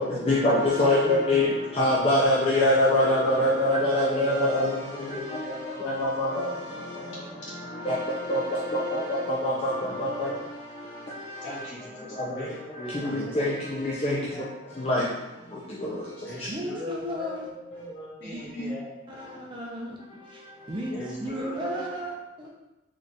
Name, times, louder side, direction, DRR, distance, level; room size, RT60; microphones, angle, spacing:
voice 1, 0.0-16.5 18.6-18.7 19.1-19.4 20.1-20.7 21.6-21.8, left 1 dB, 30° left, -7 dB, 0.5 m, -26 dB
voice 2, 6.8-7.4 16.5-17.5 18.2-18.5 19.1-20.0 20.3-20.4 20.7-22.5, equal, 25° right, -2 dB, 0.5 m, -35 dB
voice 3, 11.4-13.4 13.9-14.4 16.2-19.2 20.9-21.8, equal, 65° left, -8 dB, 1.5 m, -39 dB
3.9 x 2.4 x 3.3 m, 1.0 s
head